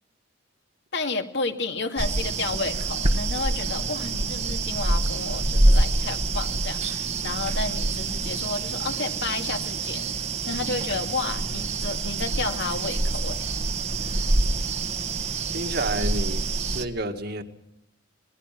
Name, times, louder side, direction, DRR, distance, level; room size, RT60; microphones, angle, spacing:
voice 1, 0.9-10.1 10.5-13.5, left 3 dB, 55° left, 5 dB, 2.3 m, -31 dB
sound 1, 2.0-16.8, right 2 dB, 35° right, 1.3 m, -26 dB
voice 2, 15.5-17.4, right 2 dB, 50° right, 6 dB, 2.1 m, -30 dB
26.0 x 21.0 x 6.1 m, 0.81 s
head